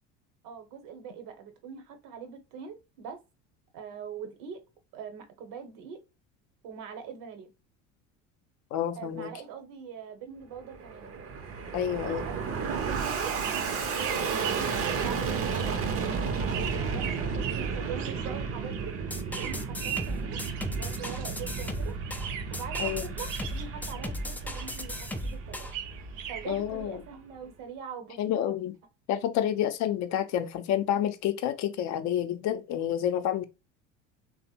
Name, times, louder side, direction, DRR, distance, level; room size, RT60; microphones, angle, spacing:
voice 1, 0.4-3.2 3.7-4.6 4.9-6.0 6.6-7.5 9.0-11.1 12.0-13.3 14.1-18.9 19.4-20.4 20.7-21.9 22.5-25.7 26.3-28.6, right 7 dB, 60° right, 1.0 m, -43 dB
voice 2, 8.7-9.3 11.7-12.3 22.8-23.1 26.5-27.0 28.2-28.7 29.1-33.4, left 10 dB, 50° left, 0.6 m, -29 dB
Fixed-wing aircraft airplane, 10.6-27.2, right 5 dB, 40° right, 0.7 m, -33 dB
sound 1, 13.3-21.8 22.0-24.3 24.5-26.6, right 10 dB, 85° right, 0.5 m, -40 dB
sound 2, 19.1-25.7, left 1 dB, 5° left, 0.3 m, -37 dB
3.2 x 2.1 x 2.8 m
hypercardioid pair, 75°, 37 cm